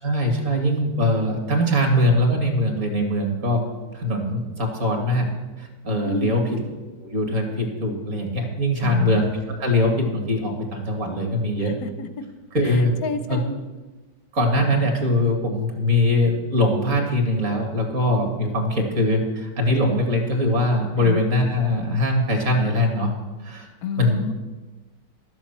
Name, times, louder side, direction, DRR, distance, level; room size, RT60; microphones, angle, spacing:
voice 1, 0.0-3.6 3.9-5.3 5.6-6.6 7.0-9.3 9.6-11.7 12.5-12.9 13.3-13.4 14.3-23.1 23.4-23.7 24.0-24.2, left 1 dB, 40° right, 2 dB, 2.3 m, -22 dB
voice 2, 6.0-6.4 8.8-9.2 11.6-12.1 12.6-13.5 21.0-21.2 23.8-24.3, left 5 dB, 65° left, 10 dB, 0.9 m, -30 dB
12.5 x 7.3 x 7.2 m, 1.2 s
omnidirectional pair, 2.2 m